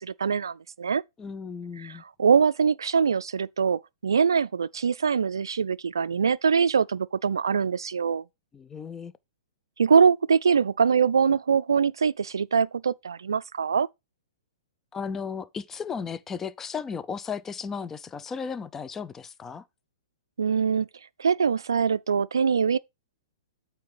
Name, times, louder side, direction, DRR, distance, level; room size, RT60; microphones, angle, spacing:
voice 1, 0.0-1.0 1.8-1.9 2.2-8.2 9.8-13.9 20.4-20.9 21.2-22.8, right 6 dB, 70° right, 0.3 m, -23 dB
voice 2, 1.2-2.0 8.5-9.1 14.9-19.6, left 6 dB, 15° left, 0.4 m, -35 dB
8.6 x 3.3 x 5.7 m
figure-of-eight pair, 110°, 2 cm